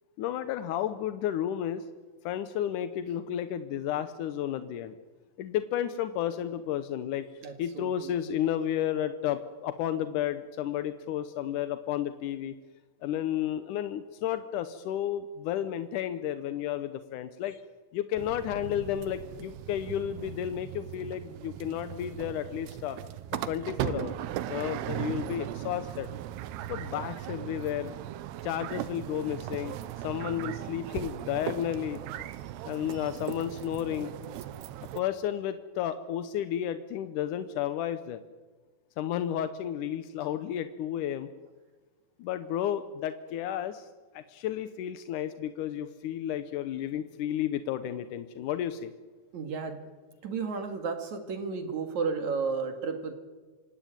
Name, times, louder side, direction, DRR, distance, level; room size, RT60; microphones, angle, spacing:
voice 1, 0.2-1.9 2.2-4.9 5.4-7.3 7.6-12.6 13.0-17.6 17.9-23.0 23.5-24.2 24.5-26.1 26.7-27.9 28.4-29.8 30.0-32.0 32.6-34.1 35.0-38.2 39.0-41.3 42.2-43.9 44.1-48.9, left 10 dB, 70° left, 11 dB, 2.0 m, -32 dB
voice 2, 7.4-8.1 49.3-49.8 50.2-53.2, right 5 dB, 55° right, 7 dB, 3.0 m, -33 dB
sound 1, 18.2-35.0, right 12 dB, 85° right, 2.9 m, -38 dB
26.5 x 17.0 x 9.0 m, 1.4 s
omnidirectional pair, 4.6 m